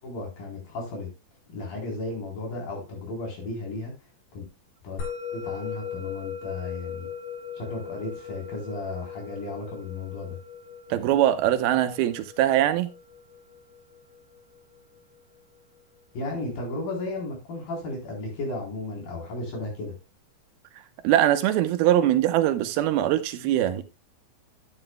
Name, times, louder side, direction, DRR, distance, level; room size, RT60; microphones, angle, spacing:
voice 1, 0.0-1.1 1.5-3.9 4.3-4.4 4.8-5.1 5.3-7.1 7.6-10.4 16.1-19.9, left 2 dB, 65° left, 5.7 m, -34 dB
Musical instrument, 5.0-15.6, left 7 dB, 90° left, 3.9 m, -40 dB
voice 2, 10.9-12.9 21.0-23.8, right 12 dB, 90° right, 2.8 m, -22 dB
11.0 x 9.7 x 2.3 m
omnidirectional pair, 4.3 m